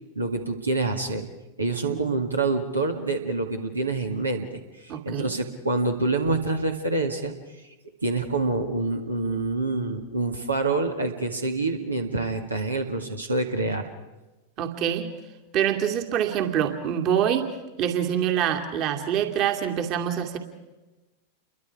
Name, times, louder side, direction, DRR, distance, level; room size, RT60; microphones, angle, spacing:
voice 1, 0.2-1.3 1.6-7.3 8.0-13.9, right 3 dB, 80° right, 4 dB, 2.0 m, -27 dB
voice 2, 4.9-5.3 14.6-15.1 15.5-17.5 17.8-20.4, right 9 dB, 40° right, 4 dB, 2.5 m, -25 dB
29.0 x 23.5 x 4.8 m, 1.1 s
figure-of-eight pair, 90°, 0 cm